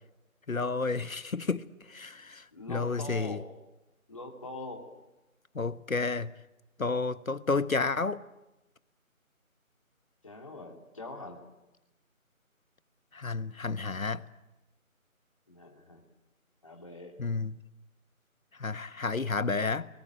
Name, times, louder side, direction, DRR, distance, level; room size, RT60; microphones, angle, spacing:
voice 1, 0.5-3.4 5.5-6.3 6.8-8.2 13.1-14.2 17.2-17.6 18.6-19.9, left 4 dB, 70° left, 1.3 m, -31 dB
voice 2, 2.5-3.4 4.1-4.8 10.2-11.4 15.5-16.0 16.6-17.1, left 2 dB, 25° left, 2.9 m, -43 dB
29.0 x 20.0 x 8.9 m
figure-of-eight pair, 175°, 42 cm